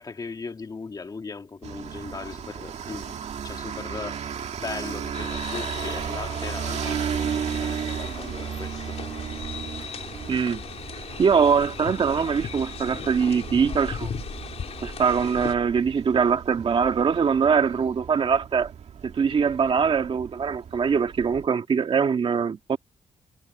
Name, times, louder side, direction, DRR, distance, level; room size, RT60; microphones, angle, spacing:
voice 1, 0.0-3.2 3.4-9.0, left 4 dB, 30° left, 2.3 m, -38 dB
sound 1, 1.6-21.5, right 8 dB, 60° right, 2.1 m, -35 dB
sound 2, 5.1-15.5, left 7 dB, 55° left, 3.4 m, -38 dB
voice 2, 10.3-10.6 11.2-14.1 14.8-18.7 19.0-22.8, right 6 dB, 45° right, 1.9 m, -22 dB
wide cardioid pair, 145°, 13 cm